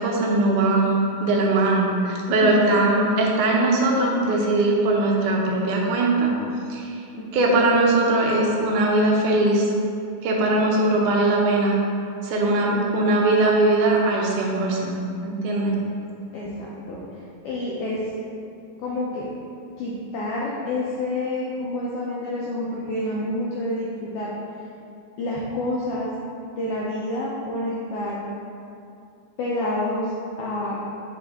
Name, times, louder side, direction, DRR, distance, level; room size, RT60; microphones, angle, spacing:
voice 1, 0.0-6.3 6.7-7.0 7.3-9.7 10.2-11.8 12.2-15.0 15.2-15.8, right 2 dB, 90° right, -2 dB, 2.4 m, -20 dB
voice 2, 2.4-2.8 7.1-7.2 12.7-13.1 16.3-17.0 17.4-18.0 18.8-19.3 19.8-24.3 25.2-26.2 26.6-28.2 29.4-30.1 30.4-30.8, left 1 dB, 85° left, -5 dB, 1.3 m, -28 dB
7.6 x 4.2 x 3.6 m, 2.6 s
omnidirectional pair, 3.5 m